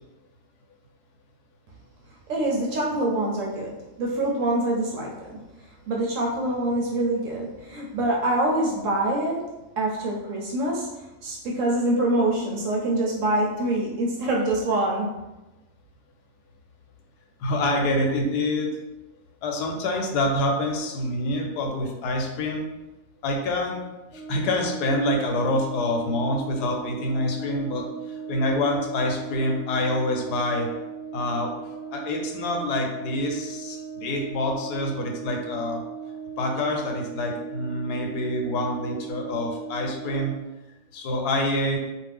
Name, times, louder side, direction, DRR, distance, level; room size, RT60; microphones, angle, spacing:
voice 1, 2.3-5.4 5.9-9.5 9.8-15.2, right 1 dB, 70° right, -2 dB, 0.8 m, -25 dB
voice 2, 17.4-18.7 19.4-22.6 23.2-23.8 24.1-27.8 28.3-30.7 31.1-31.5 31.9-35.8 36.4-40.3 40.9-41.8, left 1 dB, 90° left, 2 dB, 1.1 m, -26 dB
Brass instrument, 24.1-40.5, right 7 dB, 50° right, 0.4 m, -38 dB
2.6 x 2.3 x 3.3 m, 1.0 s
omnidirectional pair, 1.6 m